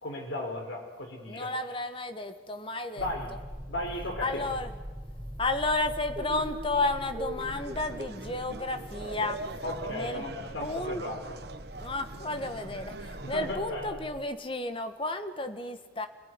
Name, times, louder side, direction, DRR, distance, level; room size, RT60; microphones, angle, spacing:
voice 1, 0.0-1.5 3.0-3.3 3.7-4.4 9.6-11.4 13.3-14.0, left 1 dB, 85° left, 2 dB, 4.5 m, -36 dB
voice 2, 1.3-3.1 4.2-4.7 5.4-9.4 9.9-10.3 10.6-11.0 11.7-16.1, left 2 dB, 30° left, 8 dB, 1.6 m, -32 dB
sound 1, 3.0-14.2, equal, ahead, 6.1 m, -43 dB
sound 2, 6.1-10.3, equal, 30° right, 2.5 m, -43 dB
sound 3, 7.4-13.6, right 3 dB, 55° right, 1.2 m, -43 dB
29.5 x 18.5 x 9.8 m, 1.3 s
head